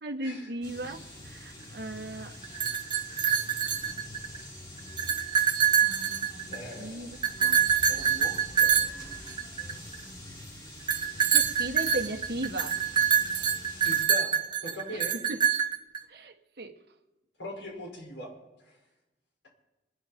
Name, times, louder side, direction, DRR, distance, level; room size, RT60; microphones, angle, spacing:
voice 1, 0.0-2.4 5.8-7.6 11.3-12.8 14.9-15.0 15.3-15.4 16.1-16.8, right 2 dB, 60° right, 1.5 m, -37 dB
sound 1, 0.6-14.0, left 1 dB, 25° left, 6.6 m, -45 dB
sound 2, 2.4-4.4 4.8-6.7 7.2-9.9 10.9-16.0, right 8 dB, 25° right, 1.0 m, -25 dB
voice 2, 6.5-7.0 7.9-8.9 13.8-14.3 14.6-15.1 17.4-18.3 18.6-18.8, left 1 dB, 80° left, 5.3 m, -41 dB
27.5 x 10.0 x 4.3 m
head